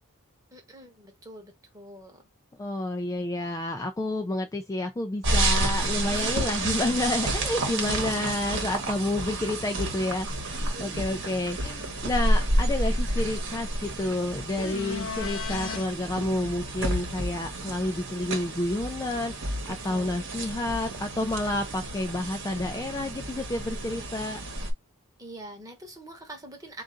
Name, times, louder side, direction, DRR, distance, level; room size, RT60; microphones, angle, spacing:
voice 1, 0.5-2.2 6.1-6.6 7.7-8.1 14.8-15.1 19.7-20.3 21.4-21.6 23.8-24.1 25.2-26.8, right 1 dB, 15° right, 1.0 m, -45 dB
voice 2, 2.6-10.3 10.8-19.6 19.8-24.4, left 2 dB, 15° left, 0.3 m, -30 dB
sound 1, 5.2-24.7, right 1 dB, 55° right, 1.0 m, -30 dB
sound 2, 14.6-15.8 19.7-19.8, left 6 dB, 60° left, 0.6 m, -35 dB
3.8 x 2.4 x 3.7 m
head